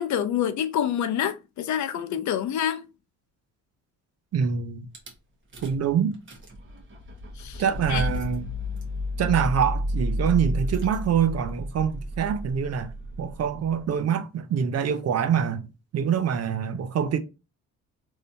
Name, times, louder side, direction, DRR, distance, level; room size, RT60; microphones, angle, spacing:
voice 1, 0.0-2.8 7.4-7.6 7.9-8.1, left 9 dB, 70° left, 0.6 m, -27 dB
voice 2, 4.3-4.9 5.6-6.2 7.6-8.4 9.2-12.9 13.2-15.6 15.9-17.2, right 7 dB, 55° right, 0.6 m, -25 dB
Rattle / Car / Engine starting, 4.9-5.1 5.5-5.9 6.1-13.9, equal, 40° right, 1.3 m, -32 dB
3.2 x 2.8 x 2.7 m
cardioid pair, 90°, 30 cm